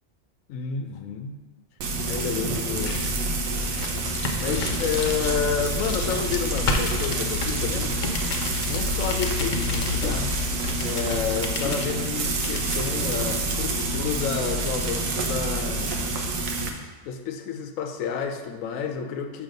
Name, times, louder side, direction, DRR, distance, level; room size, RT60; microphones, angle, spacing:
voice 1, 0.5-1.4 2.1-3.2 4.4-8.0 8.6-10.3 10.8-16.1 17.0-19.4, left 7 dB, 85° left, 6 dB, 1.0 m, -30 dB
Frying (food), 1.8-16.7, right 2 dB, 85° right, 1.2 m, -27 dB
sound 1, 2.3-13.2, left 3 dB, 50° left, 0.6 m, -33 dB
6.4 x 3.4 x 5.2 m, 1.3 s
omnidirectional pair, 1.4 m